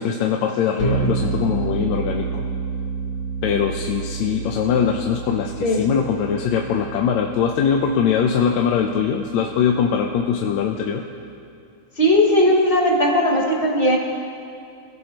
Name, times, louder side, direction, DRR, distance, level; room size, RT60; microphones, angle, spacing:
voice 1, 0.0-2.5 3.4-11.0, left 7 dB, 75° left, 2 dB, 1.9 m, -22 dB
sound 1, 0.8-10.8, right 5 dB, 40° left, 4.0 m, -30 dB
voice 2, 12.0-14.0, left 1 dB, 20° left, -2 dB, 1.8 m, -17 dB
28.0 x 16.0 x 3.0 m, 2.4 s
omnidirectional pair, 3.5 m